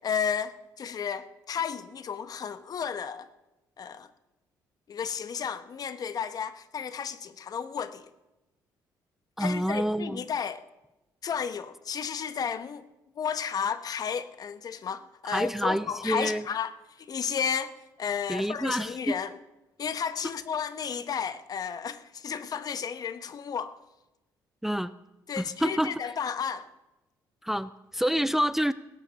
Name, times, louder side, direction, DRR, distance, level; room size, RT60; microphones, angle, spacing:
voice 1, 0.0-3.3 3.8-4.1 4.9-8.1 9.4-10.6 11.2-12.8 13.2-19.3 19.8-23.8 25.3-26.7, left 7 dB, 50° left, 1.0 m, -33 dB
voice 2, 9.4-10.2 15.2-16.4 18.3-19.2 24.6-24.9 25.4-25.9 27.4-28.7, equal, 5° right, 0.5 m, -28 dB
18.0 x 10.5 x 6.9 m
cardioid pair, 80°, 8 cm